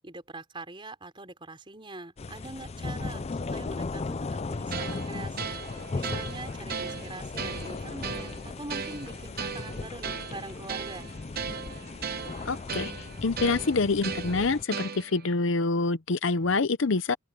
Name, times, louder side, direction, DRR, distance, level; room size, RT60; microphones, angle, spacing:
voice 1, 0.0-11.1, right 2 dB, 25° right, 4.2 m, -43 dB
sound 1, 2.2-14.6, left 3 dB, 30° left, 0.4 m, -37 dB
sound 2, 4.7-15.3, right 6 dB, 45° right, 1.0 m, -37 dB
voice 2, 12.5-17.1, left 3 dB, 60° left, 0.7 m, -26 dB
open air
head